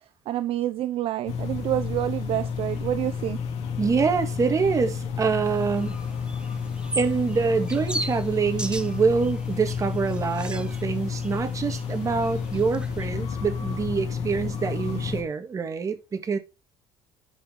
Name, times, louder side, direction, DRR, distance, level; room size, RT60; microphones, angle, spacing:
voice 1, 0.3-3.4, right 13 dB, 55° right, 0.7 m, -28 dB
sound 1, 1.3-15.2, left 6 dB, 65° left, 2.8 m, -31 dB
voice 2, 3.8-6.0 7.0-16.4, right 5 dB, 30° right, 2.0 m, -25 dB
sound 2, 5.4-13.1, right 2 dB, 10° right, 0.8 m, -39 dB
11.0 x 5.3 x 4.5 m
cardioid pair, 130°, 12 cm